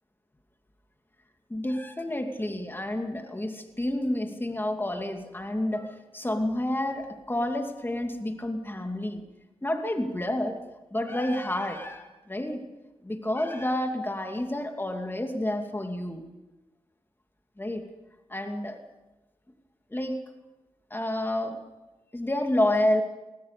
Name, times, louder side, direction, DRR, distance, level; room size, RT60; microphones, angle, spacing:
voice 1, 1.5-9.2 9.6-10.6 10.9-12.6 13.0-16.2 17.6-17.8 18.3-18.8 19.9-20.2 20.9-21.6 22.1-23.0, left 1 dB, 20° left, 5 dB, 2.5 m, -29 dB
20.0 x 20.0 x 6.8 m, 1.1 s
cardioid pair, 55°, 11 cm